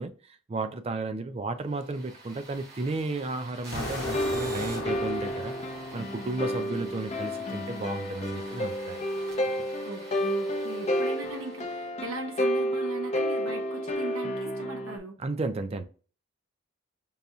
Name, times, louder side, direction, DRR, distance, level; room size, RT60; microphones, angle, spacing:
voice 1, 0.0-5.5 5.9-9.2 15.2-15.8, right 3 dB, 30° right, 0.4 m, -33 dB
sound 1, 1.7-11.9, right 2 dB, 50° right, 1.4 m, -47 dB
Explosion, 3.7-6.7, left 3 dB, 60° left, 0.9 m, -37 dB
sound 2, 4.0-15.0, equal, 30° left, 0.5 m, -31 dB
voice 2, 9.8-15.2, right 3 dB, 75° right, 1.0 m, -39 dB
5.5 x 2.6 x 2.3 m
head